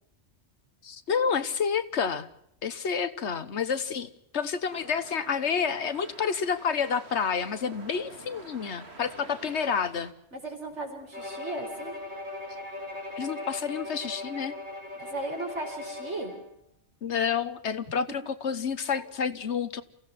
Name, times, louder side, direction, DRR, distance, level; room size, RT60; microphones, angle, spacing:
voice 1, 0.8-2.3 2.6-10.1 13.2-14.5 17.0-19.8, left 6 dB, 75° left, 12 dB, 1.4 m, -29 dB
sound 1, 4.7-10.1, right 3 dB, 65° right, 2.3 m, -48 dB
voice 2, 10.3-12.0 14.9-16.3 18.9-19.0, right 2 dB, 85° right, 3 dB, 4.9 m, -36 dB
Bowed string instrument, 11.1-16.5, left 2 dB, 45° right, 4.4 m, -39 dB
28.5 x 16.5 x 5.9 m, 0.73 s
omnidirectional pair, 1.2 m